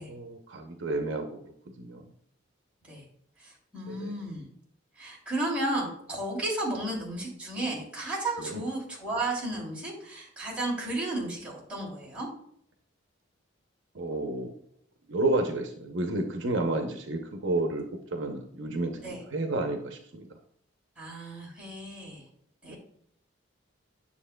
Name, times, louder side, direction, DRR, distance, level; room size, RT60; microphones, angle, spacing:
voice 1, 0.1-2.1 3.9-4.1 8.4-8.6 13.9-14.5 15.1-17.9 18.1-20.3 22.7-22.8, right 2 dB, 65° right, 4 dB, 0.7 m, -31 dB
voice 2, 3.4-4.4 5.0-12.3 19.0-19.2 21.0-22.2 22.6-22.8, right 2 dB, 5° right, -6 dB, 3.0 m, -33 dB
9.8 x 6.9 x 2.2 m, 0.66 s
head